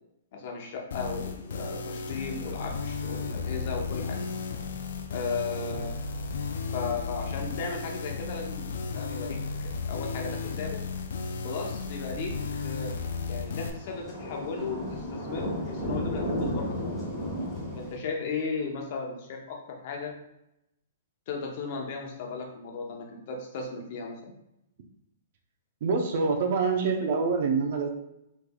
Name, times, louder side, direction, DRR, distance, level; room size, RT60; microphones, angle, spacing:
voice 1, 0.3-4.2 5.1-5.9 6.7-8.7 8.9-10.8 11.4-12.9 13.3-17.1 17.7-20.1 21.3-24.3, left 4 dB, 50° left, 1 dB, 0.7 m, -36 dB
sound 1, 0.9-13.7, left 4 dB, 75° left, 0.4 m, -34 dB
sound 2, 12.0-18.0, equal, 5° left, 1.5 m, -34 dB
voice 2, 25.8-27.9, right 4 dB, 55° right, 3 dB, 0.6 m, -26 dB
3.5 x 3.2 x 2.3 m, 0.84 s
hypercardioid pair, 140°, 0 cm